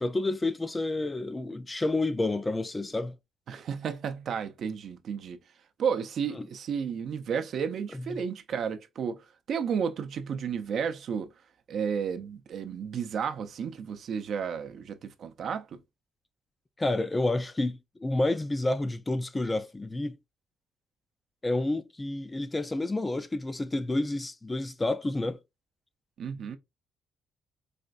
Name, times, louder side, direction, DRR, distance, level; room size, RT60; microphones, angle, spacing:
voice 1, 0.0-3.2 6.4-6.5 7.9-8.2 16.8-20.2 21.4-25.4, left 2 dB, 20° left, 0.4 m, -29 dB
voice 2, 3.5-5.4 5.8-11.3 11.7-15.8 26.2-26.6, right 7 dB, 65° right, 0.5 m, -32 dB
4.2 x 2.5 x 2.4 m
cardioid pair, 90°, 0 cm